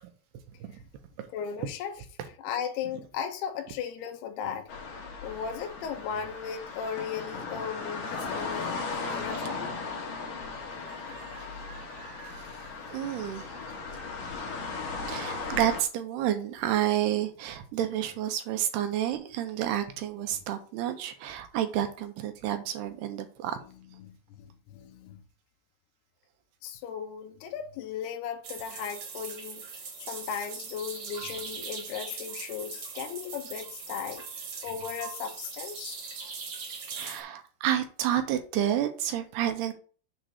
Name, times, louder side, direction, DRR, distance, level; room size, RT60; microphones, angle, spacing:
voice 1, 1.3-2.1 2.4-4.7 5.2-9.7 23.9-25.2 26.6-36.0, left 7 dB, 80° left, 3.0 m, -37 dB
sound 1, 4.7-15.8, left 4 dB, 60° left, 2.9 m, -37 dB
voice 2, 10.9-12.5 12.9-13.5 15.1-23.6 36.9-39.7, right 11 dB, 80° right, 3.0 m, -30 dB
sound 2, 28.4-37.2, right 5 dB, 50° right, 2.1 m, -40 dB
7.6 x 4.0 x 6.6 m
omnidirectional pair, 4.8 m